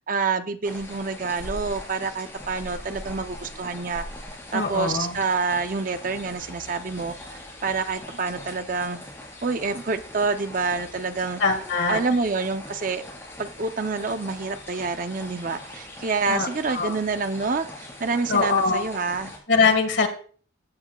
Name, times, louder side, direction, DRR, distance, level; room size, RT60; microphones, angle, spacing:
voice 1, 0.0-4.0 4.5-9.0 9.4-11.4 11.9-13.0 13.4-19.3, right 4 dB, 45° right, 9 dB, 0.7 m, -27 dB
sound 1, 0.6-19.4, left 1 dB, 10° left, 3.6 m, -41 dB
voice 2, 4.5-5.1 11.4-12.0 16.3-16.5 16.7-16.9 18.3-18.8 19.5-20.1, left 4 dB, 70° left, 5 dB, 1.7 m, -22 dB
15.5 x 7.8 x 2.3 m, 0.43 s
head